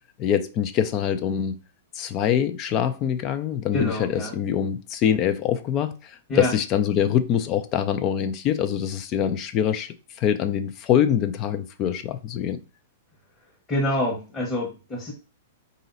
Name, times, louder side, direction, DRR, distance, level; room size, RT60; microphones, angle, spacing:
voice 1, 0.2-1.6 1.9-12.6, left 9 dB, 40° left, 0.5 m, -24 dB
voice 2, 3.7-4.3 6.3-6.5 13.7-15.1, left 1 dB, 20° left, 1.3 m, -26 dB
3.8 x 2.8 x 4.0 m
hypercardioid pair, 115°, 0 cm